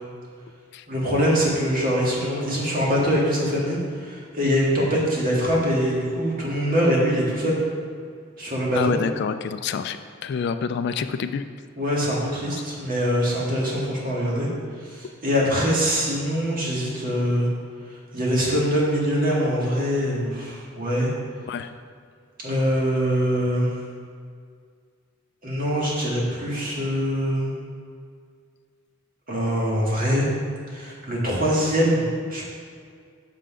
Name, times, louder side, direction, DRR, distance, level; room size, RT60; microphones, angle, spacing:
voice 1, 0.9-7.6 8.4-9.0 11.8-14.5 14.8-17.5 18.1-21.1 22.4-23.7 25.4-27.5 29.3-30.3 30.7-32.4, equal, 45° right, -5 dB, 1.9 m, -23 dB
voice 2, 8.7-10.0 10.2-11.4 12.5-12.6 21.5-21.7, left 6 dB, 55° left, 10 dB, 0.3 m, -27 dB
6.6 x 5.8 x 4.9 m, 2.1 s
head